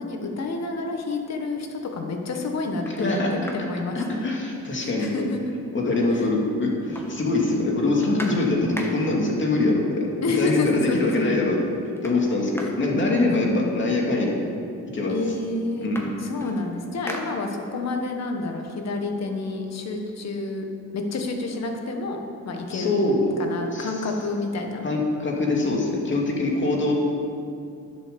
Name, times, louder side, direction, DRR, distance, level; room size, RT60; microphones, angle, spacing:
voice 1, 0.0-4.0 4.8-5.5 6.1-6.3 10.2-11.2 12.6-12.7 13.3-13.7 15.1-15.9 16.2-20.6 20.9-23.1 23.4-24.9 26.7-26.9, left 3 dB, 60° left, 3 dB, 1.6 m, -29 dB
sound 1, 1.6-1.8 2.3-2.4 2.7-4.8 5.1-5.2 5.5-6.3 6.6-9.3 10.3-10.4 10.7-11.2 11.5-13.9 14.7-14.8 15.1-17.9 18.3-20.1, equal, 10° left, 1.7 m, -41 dB
voice 2, 3.0-3.3 3.9-5.1 5.7-11.6 12.0-12.5 12.8-14.4 14.9-15.1 15.8-16.1 22.7-23.9 24.8-26.9, left 2 dB, 40° left, -1 dB, 2.5 m, -23 dB
10.5 x 7.2 x 7.0 m, 2.6 s
cardioid pair, 90°, 30 cm